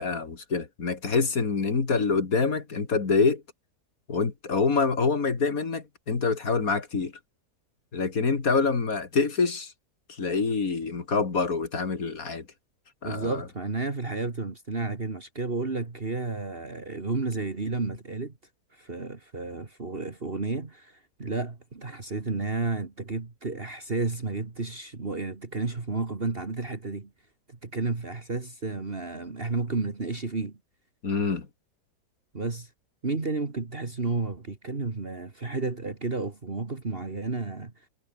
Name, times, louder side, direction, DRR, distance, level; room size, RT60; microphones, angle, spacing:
voice 1, 0.0-3.4 4.1-7.1 7.9-9.7 10.2-12.4 13.0-13.4 31.0-31.5, left 4 dB, 60° left, 2.8 m, -26 dB
voice 2, 13.0-18.3 18.7-27.1 27.5-30.6 32.3-32.7 33.0-37.7, right 3 dB, 35° right, 2.2 m, -32 dB
omnidirectional pair, 1.7 m